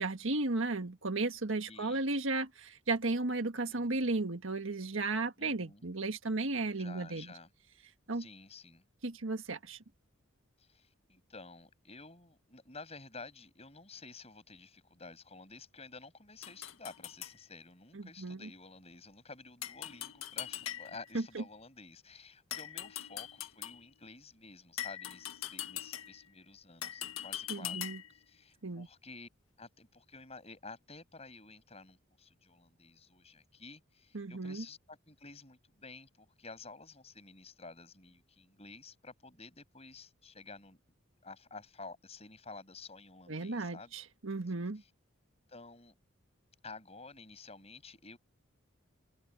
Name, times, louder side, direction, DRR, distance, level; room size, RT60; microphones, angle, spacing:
voice 1, 0.0-7.3 8.1-8.2 9.0-9.8 17.9-18.5 21.1-21.4 27.5-28.0 28.6-28.9 34.1-34.6 43.3-44.8, right 2 dB, 70° right, 1.6 m, -34 dB
voice 2, 1.7-2.0 3.7-4.1 5.4-5.8 6.8-7.5 8.1-8.8 10.6-27.8 28.1-29.3 29.6-40.8 41.2-44.0 44.8-44.9 45.5-45.9 46.6-48.2, left 3 dB, 30° left, 7.3 m, -52 dB
sound 1, 16.4-17.4 19.6-21.1 22.5-23.9 24.8-26.3 26.8-28.2, left 11 dB, 80° left, 1.8 m, -42 dB
head